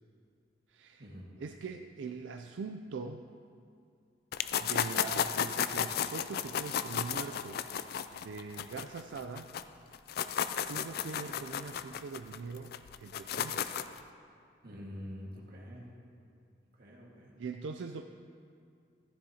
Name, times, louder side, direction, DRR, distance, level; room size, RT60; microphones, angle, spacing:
voice 1, 0.7-1.0 1.4-3.2 4.6-9.5 10.7-13.7 17.4-18.0, right 4 dB, 80° right, 5 dB, 0.4 m, -42 dB
sound 1, 4.3-9.6 9.9-14.0, left 8 dB, 55° left, 0.3 m, -34 dB
voice 2, 14.6-15.9 16.8-17.3, equal, 55° right, -3 dB, 1.7 m, -46 dB
14.5 x 10.0 x 2.8 m, 2.4 s
head